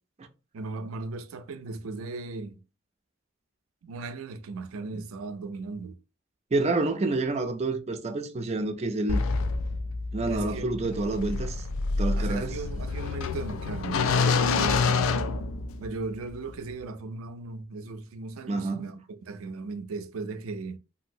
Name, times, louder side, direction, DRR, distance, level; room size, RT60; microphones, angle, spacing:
voice 1, 0.5-2.6 3.8-6.0 10.3-10.9 12.2-15.2 15.8-20.8, right 3 dB, 90° right, 0.4 m, -37 dB
voice 2, 6.5-9.2 10.1-11.6 12.0-12.6 18.5-18.8, right 2 dB, 30° right, 0.4 m, -28 dB
sound 1, 9.1-16.0, left 4 dB, 75° left, 0.3 m, -27 dB
2.9 x 2.7 x 2.6 m
head